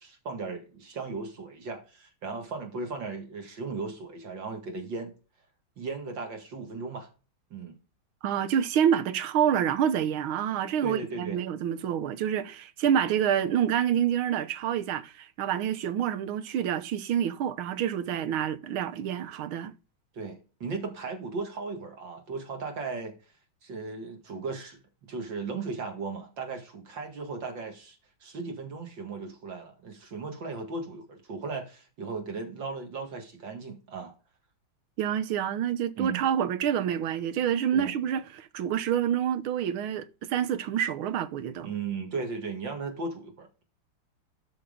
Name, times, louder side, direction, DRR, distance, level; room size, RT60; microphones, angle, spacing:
voice 1, 0.0-5.1 5.8-7.1 7.5-7.8 10.8-11.4 20.1-23.1 23.6-34.1 36.0-36.2 37.7-37.9 41.6-43.6, right 4 dB, 65° right, 2.5 m, -36 dB
voice 2, 8.2-19.7 35.0-41.7, right 9 dB, 85° right, 1.7 m, -27 dB
12.0 x 4.2 x 5.1 m
omnidirectional pair, 2.3 m